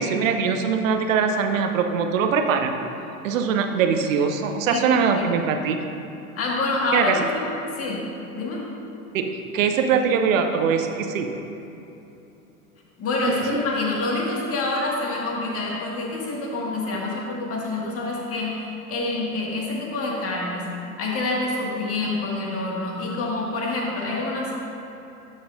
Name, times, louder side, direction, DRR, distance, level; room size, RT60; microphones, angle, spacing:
voice 1, 0.0-2.7 3.2-5.9 6.9-7.1 9.1-11.3, right 6 dB, 60° right, 6 dB, 0.8 m, -22 dB
voice 2, 4.7-5.3 6.4-7.5 7.8-8.7 13.0-20.7 21.0-24.6, left 2 dB, 30° left, -2 dB, 1.8 m, -27 dB
11.5 x 7.0 x 2.5 m, 2.9 s
figure-of-eight pair, 85°, 44 cm